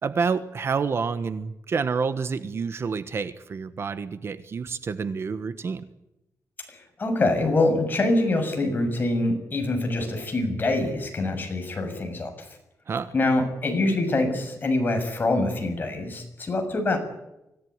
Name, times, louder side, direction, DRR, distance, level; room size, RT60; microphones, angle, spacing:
voice 1, 0.0-5.8 12.9-13.1, right 5 dB, 45° right, 12 dB, 1.3 m, -28 dB
voice 2, 6.7-12.5 13.1-17.0, left 2 dB, 30° left, 5 dB, 6.8 m, -25 dB
25.0 x 17.5 x 9.6 m, 0.90 s
wide cardioid pair, 160°, 6 cm